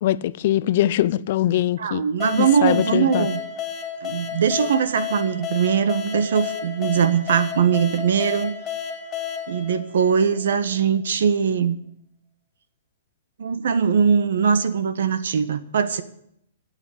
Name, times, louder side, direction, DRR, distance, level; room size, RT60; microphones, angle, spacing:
voice 1, 0.0-2.0 2.4-3.3, left 13 dB, 50° left, 17 dB, 0.6 m, -22 dB
voice 2, 1.8-3.4 4.0-8.5 9.5-11.8 13.4-16.0, right 7 dB, 75° right, 13 dB, 1.4 m, -21 dB
sound 1, 2.2-10.6, left 8 dB, 20° left, 2.5 m, -32 dB
12.0 x 8.2 x 9.5 m, 0.72 s
hypercardioid pair, 160°, 0 cm